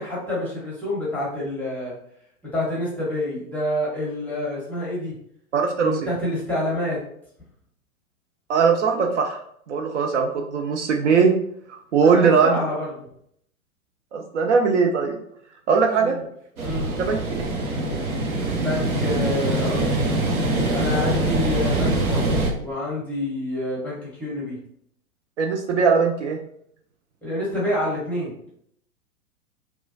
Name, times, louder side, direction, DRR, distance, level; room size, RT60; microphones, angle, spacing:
voice 1, 0.0-2.0 2.5-5.1 5.8-7.0 12.0-13.1 16.0-16.2 16.6-16.9 18.6-20.0 20.7-24.6 27.2-28.3, left 1 dB, 5° left, -6 dB, 0.6 m, -28 dB
voice 2, 5.5-6.1 8.5-9.4 9.7-11.3 11.7-12.6 14.1-15.2 15.7-16.2 17.0-17.2 25.4-26.4, right 5 dB, 55° right, 3 dB, 0.5 m, -20 dB
sound 1, 16.6-22.5, right 2 dB, 75° right, 0.9 m, -23 dB
3.0 x 2.2 x 2.6 m, 0.68 s
figure-of-eight pair, 105°, 43 cm